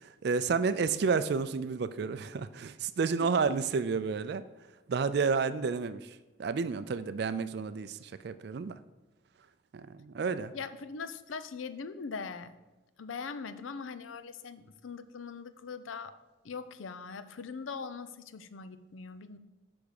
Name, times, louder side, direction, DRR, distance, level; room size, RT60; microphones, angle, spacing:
voice 1, 0.0-4.4 4.9-6.1 6.4-8.7 9.7-10.5, right 5 dB, 55° right, 12 dB, 0.4 m, -30 dB
voice 2, 10.5-12.5 13.0-16.2 16.4-19.4, left 5 dB, 90° left, 12 dB, 0.5 m, -41 dB
10.0 x 3.5 x 6.4 m, 1.1 s
head